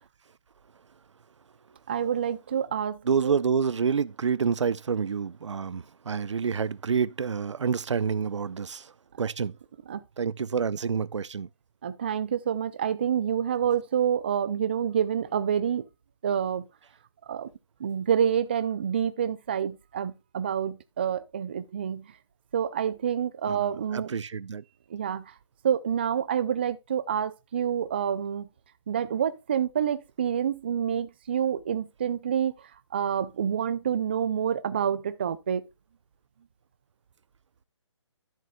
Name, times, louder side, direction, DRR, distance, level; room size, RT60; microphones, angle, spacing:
voice 1, 1.9-3.3 9.9-10.0 11.8-15.9 16.2-16.7 17.3-17.5 17.8-22.1 22.5-24.2 24.9-25.3 25.6-28.5 28.9-35.6, right 8 dB, 20° right, 0.4 m, -28 dB
voice 2, 3.1-8.9 9.2-9.5 10.2-11.5 23.5-24.6, right 6 dB, 70° right, 0.6 m, -28 dB
13.0 x 7.7 x 2.3 m
hypercardioid pair, 165°, 16 cm